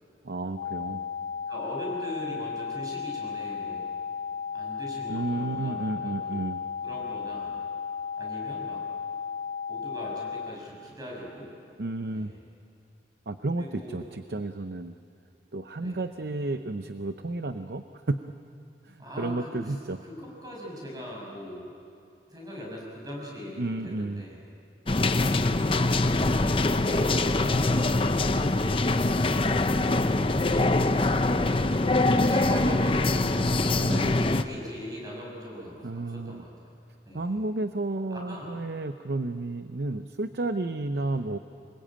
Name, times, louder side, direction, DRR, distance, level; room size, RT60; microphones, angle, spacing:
voice 1, 0.2-1.0 5.1-6.6 11.8-12.3 13.3-14.9 15.5-18.2 18.9-20.0 23.6-24.2 33.7-34.1 35.8-36.4 37.1-41.4, right 2 dB, 65° right, 9 dB, 0.7 m, -32 dB
sound 1, 0.6-10.6, left 6 dB, 60° left, 1.1 m, -34 dB
voice 2, 1.5-3.9 4.5-6.4 6.8-7.6 8.2-8.8 9.7-11.5 12.1-12.4 13.5-14.0 15.8-16.0 19.0-19.7 20.0-21.7 22.3-24.5 29.4-33.5 33.9-36.8 37.0-37.4 38.1-38.5 40.9-41.1, equal, 20° right, -2 dB, 6.8 m, -41 dB
sound 2, 24.9-34.4, left 2 dB, 30° left, 0.7 m, -24 dB
25.5 x 22.0 x 8.8 m, 2.6 s
head